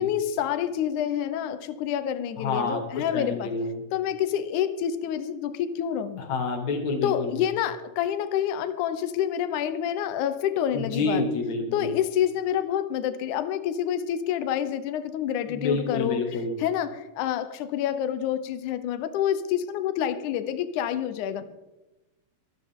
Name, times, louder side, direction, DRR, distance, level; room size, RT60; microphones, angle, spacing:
voice 1, 0.0-3.5 3.9-6.2 7.0-11.2 11.7-16.3 16.6-21.4, left 10 dB, 85° left, 11 dB, 1.7 m, -28 dB
voice 2, 2.4-3.8 6.2-7.3 10.7-11.9 15.5-16.6, left 3 dB, 50° left, 3 dB, 3.0 m, -28 dB
23.5 x 13.5 x 3.6 m, 1.0 s
omnidirectional pair, 4.6 m